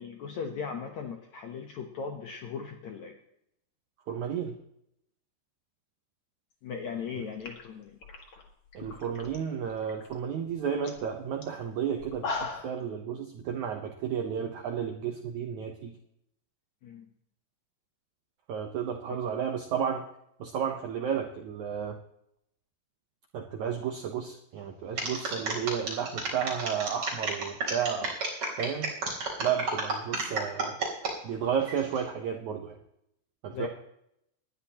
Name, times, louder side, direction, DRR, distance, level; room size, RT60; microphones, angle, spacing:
voice 1, 0.0-3.1 6.6-8.0 16.8-17.1 33.5-33.7, left 6 dB, 70° left, 3 dB, 1.7 m, -38 dB
voice 2, 4.1-4.5 8.7-15.9 18.5-20.0 20.4-22.0 23.3-28.1 28.6-28.9 29.4-30.8 31.2-32.8 33.4-33.7, right 8 dB, 75° right, 4 dB, 1.7 m, -32 dB
sound 1, 7.0-7.1 7.4-9.4 9.7-10.1 10.5-10.6 10.8-11.0 11.4-11.5 12.0-12.8, left 4 dB, 45° left, 2.2 m, -38 dB
sound 2, 25.0-31.1 31.6-32.0, right 3 dB, 35° right, 4.3 m, -32 dB
19.5 x 12.5 x 3.0 m, 0.77 s
omnidirectional pair, 4.7 m